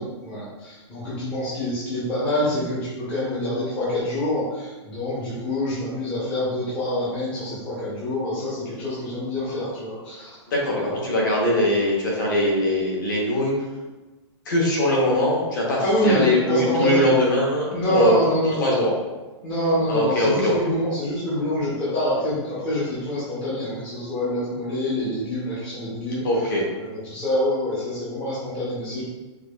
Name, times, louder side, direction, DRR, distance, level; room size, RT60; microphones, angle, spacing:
voice 1, 0.0-10.3 15.8-17.1 17.7-18.8 19.4-26.3 26.8-29.0, left 1 dB, 10° left, -11 dB, 0.5 m, -26 dB
voice 2, 10.5-13.5 14.5-18.1 18.6-18.9 19.9-20.5 26.2-26.6, left 1 dB, 40° left, -3 dB, 0.8 m, -21 dB
4.6 x 2.3 x 2.2 m, 1.2 s
hypercardioid pair, 180°, 15 cm